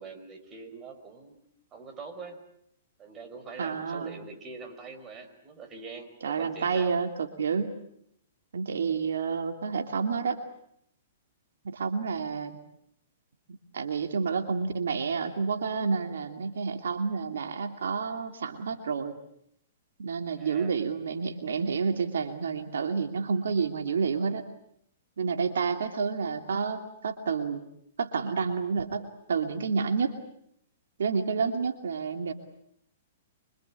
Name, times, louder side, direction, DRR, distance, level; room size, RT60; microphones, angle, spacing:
voice 1, 0.0-1.4 1.7-2.4 3.0-6.9 20.4-20.8, right 4 dB, 25° right, 6 dB, 4.8 m, -44 dB
voice 2, 3.6-4.2 6.2-7.8 8.5-10.4 11.6-12.6 13.7-19.2 20.0-24.4 25.2-27.6 28.0-30.1 31.0-32.3, right 5 dB, 85° right, 7 dB, 2.7 m, -29 dB
26.0 x 25.5 x 8.4 m, 0.72 s
hypercardioid pair, 140°, 0 cm